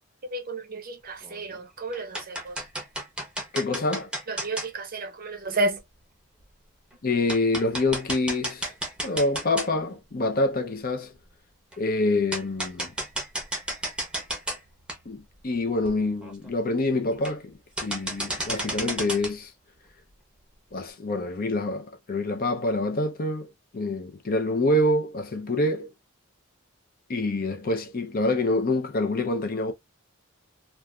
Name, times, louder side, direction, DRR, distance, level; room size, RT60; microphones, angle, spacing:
voice 1, 0.3-2.5 4.3-5.8, right 2 dB, 40° right, 0.6 m, -31 dB
sound 1, 1.2-1.6 1.9-4.7 5.8-5.9 6.4-6.5 6.9-7.0 7.3-10.0 10.4-10.5 11.7-11.8 12.3-14.6 14.9-15.0 15.5-15.6 15.8-15.9 16.2-16.5 17.1-17.5 17.8-19.3, right 1 dB, 5° right, 0.8 m, -32 dB
voice 2, 3.5-4.1 7.0-8.7 9.0-11.1 11.8-12.9 15.1-19.5 20.7-25.9 27.1-29.7, left 2 dB, 40° left, 0.5 m, -26 dB
3.1 x 2.4 x 2.3 m
head